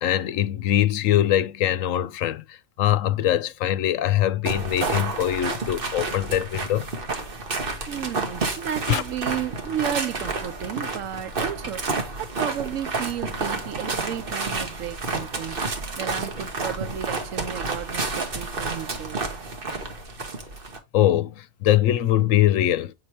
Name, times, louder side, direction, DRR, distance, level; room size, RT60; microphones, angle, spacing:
voice 1, 0.0-2.4 2.8-6.9 8.9-9.0 20.9-22.9, left 12 dB, 90° left, 1.0 m, -22 dB
sound 1, 4.4-20.8, right 3 dB, 45° right, 1.4 m, -30 dB
voice 2, 7.9-19.3, right 10 dB, 90° right, 1.1 m, -33 dB
7.7 x 4.8 x 2.8 m
omnidirectional pair, 1.3 m